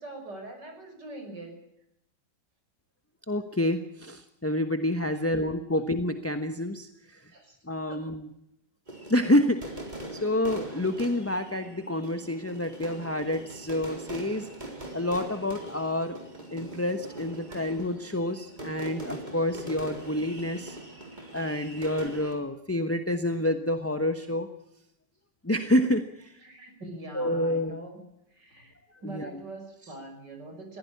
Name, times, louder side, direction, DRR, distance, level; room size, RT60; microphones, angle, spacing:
voice 1, 0.0-1.6 5.1-5.3 5.7-5.8 7.3-7.6 7.9-8.0 17.5-17.6 26.4-28.0 28.3-28.8 29.0-30.8, right 2 dB, 60° right, 5 dB, 6.5 m, -43 dB
voice 2, 3.3-7.2 7.6-8.3 9.1-9.7 10.1-14.5 14.9-16.2 16.5-20.8 21.3-24.5 25.4-26.4 27.1-27.8 29.1-29.3, left 1 dB, 10° left, 8 dB, 0.9 m, -28 dB
sound 1, 8.9-22.3, right 1 dB, 20° right, 4.3 m, -42 dB
21.5 x 16.0 x 8.6 m, 0.77 s
omnidirectional pair, 2.1 m